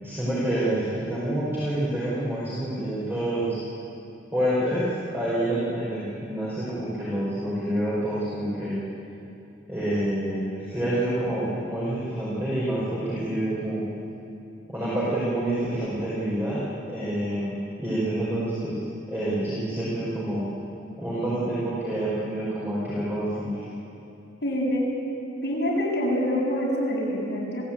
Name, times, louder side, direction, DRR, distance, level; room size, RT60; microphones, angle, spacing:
voice 1, 0.0-3.6 4.3-8.8 9.7-13.8 14.7-16.6 16.9-18.7 19.1-20.5 21.0-23.6, right 1 dB, 10° right, -9 dB, 5.0 m, -27 dB
voice 2, 24.4-24.8 25.4-27.6, equal, 55° left, -5 dB, 7.2 m, -25 dB
26.0 x 17.0 x 8.9 m, 2.8 s
head